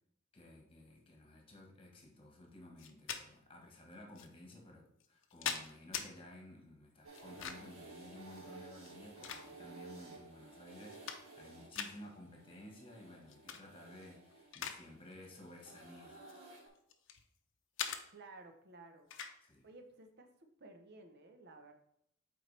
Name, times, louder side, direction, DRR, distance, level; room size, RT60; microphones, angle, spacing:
voice 1, 0.3-16.2 19.4-19.7, left 1 dB, 25° left, 0 dB, 1.4 m, -55 dB
sound 1, 2.8-3.2 4.2-4.3 5.0-6.1 7.1-7.8 8.8-9.8 10.4-10.5 10.8-11.5 11.7-11.9 13.3-13.6 14.0-14.8 15.1-15.4 16.1-17.2 17.8-18.0 19.1-19.4, left 8 dB, 65° left, 0.6 m, -42 dB
sound 2, 7.0-16.7, right 3 dB, 75° right, 2.6 m, -55 dB
voice 2, 18.1-19.1 19.6-21.7, right 2 dB, 55° right, 6 dB, 0.8 m, -55 dB
8.0 x 4.4 x 3.3 m, 0.73 s
head